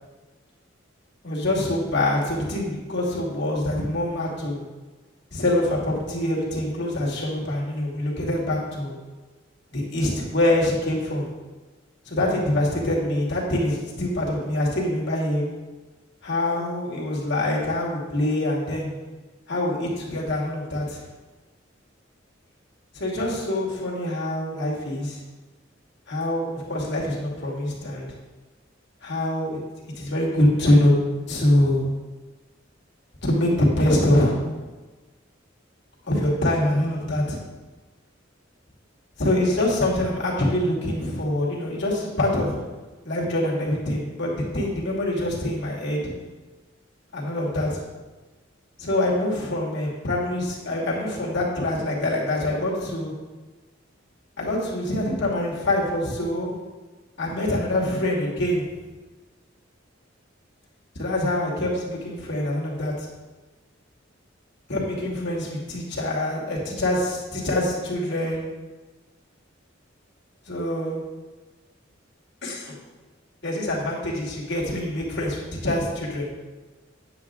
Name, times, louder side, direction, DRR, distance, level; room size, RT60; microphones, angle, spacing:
voice 1, 1.2-4.6 5.3-8.9 9.7-11.3 12.1-15.5 16.2-18.9 19.5-21.0 22.9-25.2 26.1-28.1 29.0-29.6 29.9-30.9 31.3-31.9 33.2-34.4 36.1-37.4 39.2-42.6 43.0-46.0 47.1-47.8 48.8-53.1 54.4-56.6 57.2-58.6 61.0-63.1 64.7-68.4 70.5-71.0 72.4-72.8 73.4-76.3, left 1 dB, 60° left, -4 dB, 2.5 m, -24 dB
9.8 x 8.0 x 3.7 m, 1.2 s
head